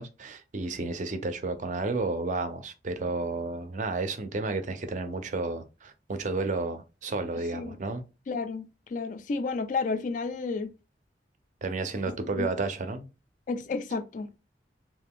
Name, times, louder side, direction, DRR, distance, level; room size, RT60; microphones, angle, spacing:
voice 1, 0.0-8.0 11.6-13.1, right 3 dB, 40° right, 0.4 m, -32 dB
voice 2, 8.3-10.7 12.3-12.5 13.5-14.4, left 4 dB, 45° left, 0.3 m, -32 dB
2.5 x 2.2 x 3.5 m
head